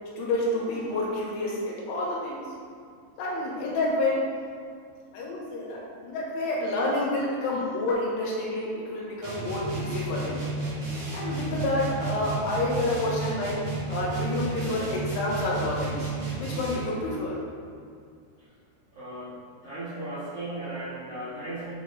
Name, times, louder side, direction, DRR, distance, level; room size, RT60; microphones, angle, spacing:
voice 1, 0.2-2.4 3.2-4.2 5.1-10.4 11.1-13.5 13.9-17.4, left 2 dB, 80° left, -4 dB, 3.5 m, -29 dB
sound 1, 9.2-17.0, right 3 dB, 60° right, 2.1 m, -32 dB
voice 2, 18.9-21.7, right 1 dB, 80° right, -13 dB, 1.3 m, -36 dB
7.1 x 4.8 x 3.7 m, 2.3 s
omnidirectional pair, 5.6 m